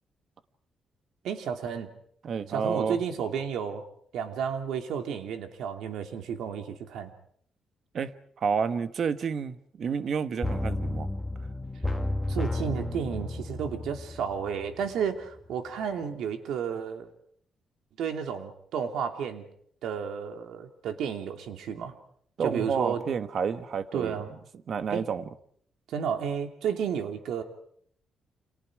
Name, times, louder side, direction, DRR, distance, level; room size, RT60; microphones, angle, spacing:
voice 1, 1.2-1.9 2.5-3.8 4.1-7.1 12.3-17.1 18.0-19.5 19.8-21.9 22.4-23.0 23.9-24.3 24.9-25.0 25.9-27.4, right 7 dB, 90° right, 2.9 m, -32 dB
voice 2, 2.2-3.0 7.9-11.1 22.4-24.2 24.7-25.2, right 6 dB, 50° right, 1.3 m, -30 dB
sound 1, 10.4-15.1 15.4-15.5, left 1 dB, 5° left, 1.8 m, -32 dB
30.0 x 27.0 x 4.9 m
cardioid pair, 150°, 0 cm